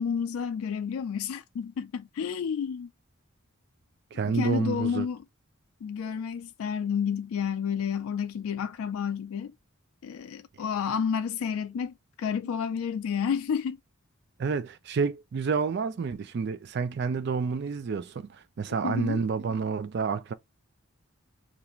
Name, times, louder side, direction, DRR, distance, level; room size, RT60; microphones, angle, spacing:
voice 1, 0.0-2.9 4.2-5.2 5.8-9.5 10.0-13.8 18.8-19.2, left 7 dB, 80° left, 0.3 m, -30 dB
voice 2, 4.1-5.1 14.4-20.3, right 5 dB, 50° right, 0.3 m, -29 dB
2.5 x 2.4 x 3.0 m
head